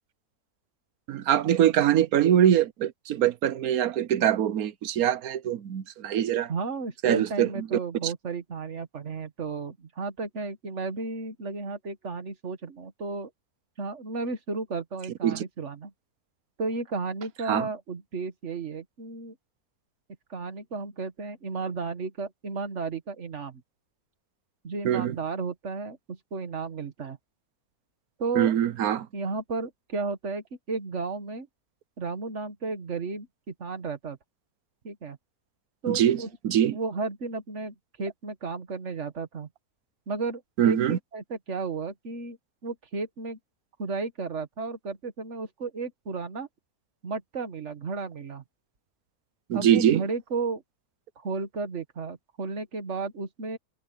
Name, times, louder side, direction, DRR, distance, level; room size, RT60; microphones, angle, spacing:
voice 1, 1.1-6.5 7.0-7.7 8.0-8.1 15.2-15.4 17.5-17.7 24.8-25.2 28.3-29.1 35.9-36.2 36.4-36.8 40.6-41.0 49.5-50.0, right 10 dB, 75° right, 1.2 m, -23 dB
voice 2, 6.5-13.3 13.8-15.9 16.6-19.4 20.3-23.6 24.6-27.2 28.2-28.5 29.1-31.5 32.0-34.2 34.8-35.2 35.8-36.3 36.7-39.5 40.1-42.4 42.6-43.4 43.8-46.5 47.0-48.4 49.5-50.6 51.2-53.6, right 4 dB, 50° right, 1.9 m, -33 dB
omnidirectional pair, 1.6 m